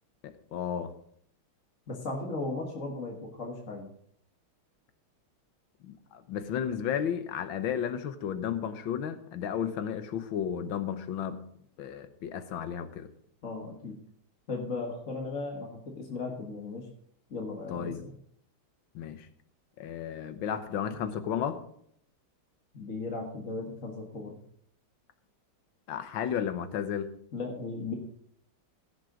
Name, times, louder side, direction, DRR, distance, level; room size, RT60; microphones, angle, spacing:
voice 1, 0.2-0.9 5.8-11.4 11.8-13.1 17.7-18.0 19.0-19.3 19.8-21.6 25.9-27.1, left 8 dB, 75° left, 10 dB, 1.7 m, -33 dB
voice 2, 1.9-3.9 13.4-14.0 14.5-16.9 17.3-18.1 22.7-24.4 27.3-27.9, left 3 dB, 40° left, 0 dB, 1.8 m, -36 dB
17.0 x 6.6 x 5.0 m, 0.66 s
omnidirectional pair, 2.2 m